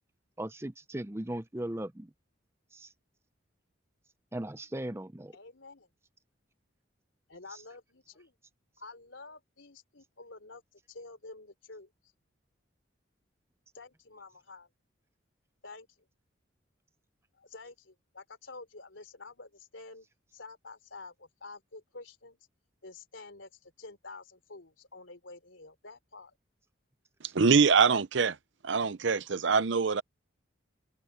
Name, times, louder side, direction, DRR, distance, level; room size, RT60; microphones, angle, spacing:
voice 1, 0.4-2.1 2.7-2.9 4.3-5.3, right 1 dB, 15° right, 0.6 m, -37 dB
voice 2, 5.3-5.9 7.3-8.3 8.8-10.6 10.9-11.9 13.7-14.7 15.6-15.9 17.3-20.1 20.3-22.4 22.8-26.3, left 3 dB, 80° left, 3.5 m, -49 dB
voice 3, 27.3-28.4 28.6-30.0, right 5 dB, 70° right, 0.6 m, -24 dB
head